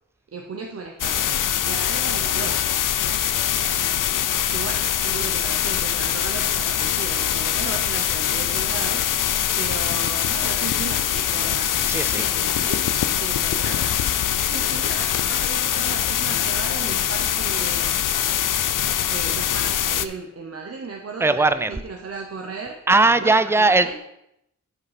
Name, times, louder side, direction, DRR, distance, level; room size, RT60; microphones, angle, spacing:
voice 1, 0.3-1.3 1.7-2.7 4.5-9.1 9.6-18.0 19.1-22.9 23.2-24.0, right 4 dB, 50° right, 1 dB, 0.8 m, -35 dB
sound 1, 1.0-20.1, left 10 dB, 75° left, 0.5 m, -23 dB
voice 2, 11.9-12.2 14.4-14.5 21.2-21.7 22.9-24.0, right 3 dB, 10° right, 13 dB, 0.3 m, -19 dB
9.5 x 5.2 x 4.2 m, 0.81 s
wide cardioid pair, 130°, 32 cm